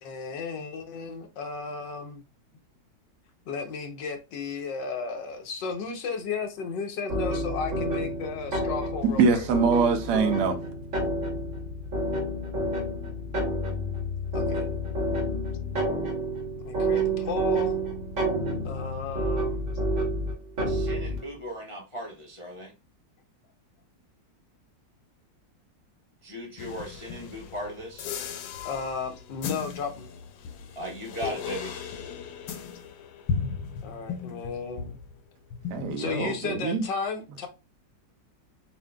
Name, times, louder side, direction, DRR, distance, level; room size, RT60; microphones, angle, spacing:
voice 1, 0.0-2.2 3.5-9.5 14.3-14.7 16.6-17.8 18.6-19.6 28.6-30.1 33.8-35.0 36.0-37.5, left 5 dB, 75° left, 1.4 m, -34 dB
sound 1, 7.1-21.2, right 1 dB, 45° right, 1.2 m, -29 dB
voice 2, 9.2-10.6 35.7-36.8, right 5 dB, 65° right, 1.2 m, -24 dB
voice 3, 20.7-22.7 26.2-28.1 30.8-31.7, equal, 55° left, 0.3 m, -37 dB
sound 2, 26.6-35.2 35.5-36.6, left 6 dB, 90° left, 1.4 m, -36 dB
7.2 x 2.6 x 2.2 m
omnidirectional pair, 2.0 m